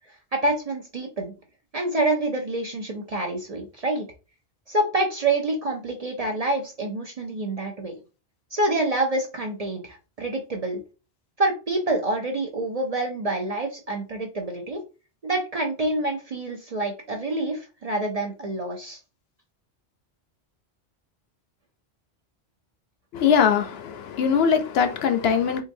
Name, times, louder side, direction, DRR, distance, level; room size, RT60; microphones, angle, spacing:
voice 1, 0.1-1.3 1.7-4.1 4.7-8.0 8.5-10.8 11.4-14.8 15.2-19.0, right 2 dB, 45° right, 0.5 m, -27 dB
voice 2, 23.1-25.6, left 7 dB, 70° left, 0.8 m, -21 dB
3.8 x 2.5 x 2.6 m
omnidirectional pair, 1.1 m